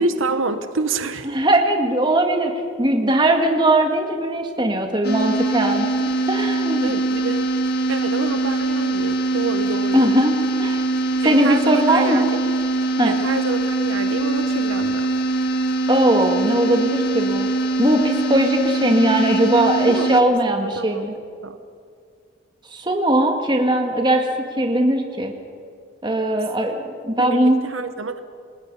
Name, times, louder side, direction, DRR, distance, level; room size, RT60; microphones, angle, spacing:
voice 1, 0.0-1.3 6.8-7.5 7.9-10.1 11.2-12.5 13.0-15.1 19.9-21.1 21.4-21.6 27.2-28.2, right 3 dB, 80° right, 9 dB, 1.2 m, -27 dB
voice 2, 1.3-6.9 9.9-10.8 11.2-12.3 13.0-13.1 15.9-17.5 17.8-21.1 22.7-24.3 24.6-25.3 26.0-27.6, right 1 dB, 20° right, 3 dB, 1.9 m, -19 dB
sound 1, 5.0-20.2, right 2 dB, 50° left, 1.5 m, -22 dB
29.0 x 19.0 x 5.5 m, 2.2 s
head